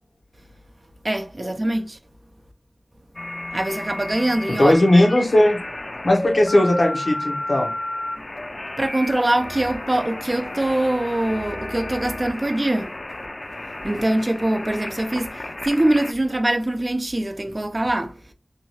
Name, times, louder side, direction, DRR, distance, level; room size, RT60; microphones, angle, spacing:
voice 1, 1.0-2.0 3.5-4.7 8.8-12.9 13.8-18.2, right 1 dB, 40° right, 0.4 m, -23 dB
sound 1, 3.2-16.1, left 1 dB, 45° left, 0.4 m, -32 dB
voice 2, 4.6-5.6 6.0-7.7, left 1 dB, 85° left, 0.7 m, -17 dB
2.7 x 2.2 x 3.0 m
wide cardioid pair, 55°, 0 cm